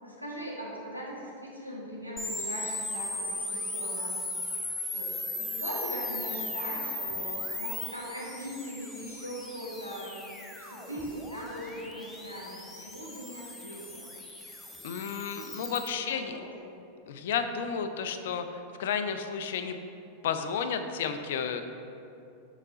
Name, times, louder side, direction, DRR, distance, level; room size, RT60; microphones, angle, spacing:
voice 1, 0.0-4.2 4.9-14.1 15.8-16.7, equal, 90° right, -6 dB, 1.5 m, -40 dB
sound 1, 2.2-15.9, left 2 dB, 5° left, 0.7 m, -37 dB
voice 2, 14.8-16.3 17.1-19.8 20.2-21.6, left 7 dB, 55° left, 8 dB, 0.4 m, -32 dB
6.5 x 4.0 x 4.8 m, 2.7 s
figure-of-eight pair, 90°, 0 cm